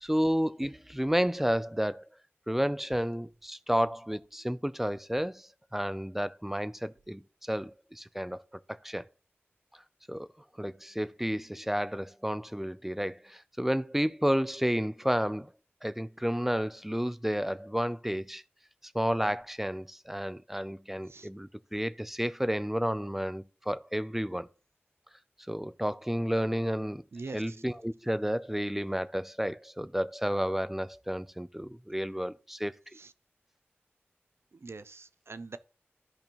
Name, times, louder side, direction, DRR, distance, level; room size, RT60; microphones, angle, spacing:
voice 1, 0.0-2.1 2.5-8.4 8.7-9.1 10.1-10.3 10.6-15.5 15.8-18.4 18.9-24.5 25.5-27.0 27.3-32.7, equal, 5° right, 0.4 m, -31 dB
voice 2, 27.1-27.6 33.0-33.1 34.5-35.6, right 3 dB, 75° right, 0.5 m, -43 dB
14.5 x 5.2 x 3.0 m
wide cardioid pair, 65°, 4 cm